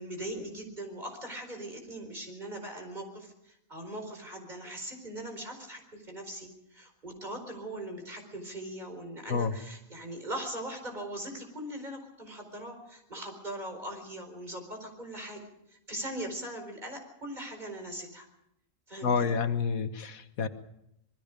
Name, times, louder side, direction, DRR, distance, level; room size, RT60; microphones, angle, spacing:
voice 1, 0.0-15.4 15.7-18.3 18.9-19.4, right 1 dB, 30° right, 4 dB, 4.7 m, -40 dB
voice 2, 19.0-20.5, left 5 dB, 85° left, 9 dB, 1.6 m, -28 dB
26.5 x 21.5 x 5.2 m, 0.79 s
omnidirectional pair, 1.4 m